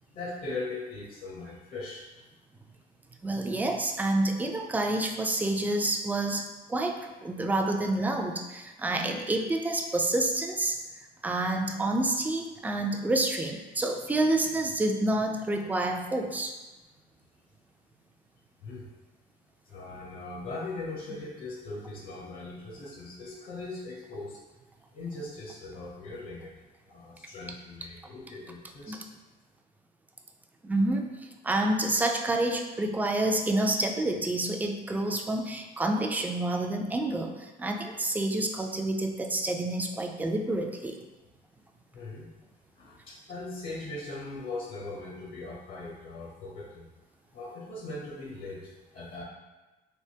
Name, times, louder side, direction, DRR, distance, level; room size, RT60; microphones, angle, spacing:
voice 1, 0.1-2.0 18.6-18.9 19.6-24.4 24.9-26.5 26.9-29.0 41.9-42.3 42.8-46.9 47.3-49.2, left 2 dB, 60° left, -3 dB, 0.8 m, -40 dB
voice 2, 3.2-10.8 11.2-16.5 28.9-29.0 30.6-41.0, right 2 dB, 10° right, 3 dB, 0.3 m, -28 dB
3.4 x 2.9 x 2.7 m, 1.1 s
cardioid pair, 110°, 17 cm